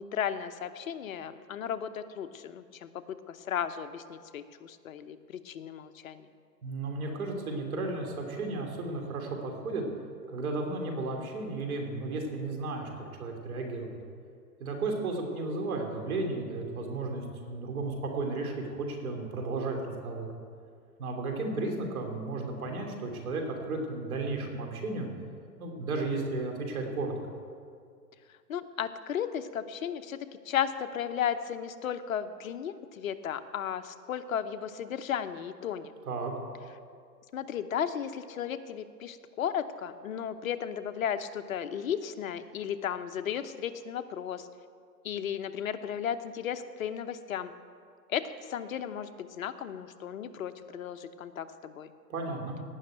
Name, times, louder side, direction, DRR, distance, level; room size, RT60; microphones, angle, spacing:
voice 1, 0.0-6.3 28.3-35.9 37.3-44.5 45.0-47.5 48.1-51.9, left 9 dB, 55° left, 9 dB, 0.9 m, -35 dB
voice 2, 6.6-9.8 10.3-13.9 14.6-20.3 21.0-25.1 25.6-27.1 36.1-36.3 52.1-52.6, right 3 dB, 60° right, 2 dB, 3.2 m, -34 dB
17.5 x 6.3 x 9.0 m, 2.2 s
hypercardioid pair, 155°, 49 cm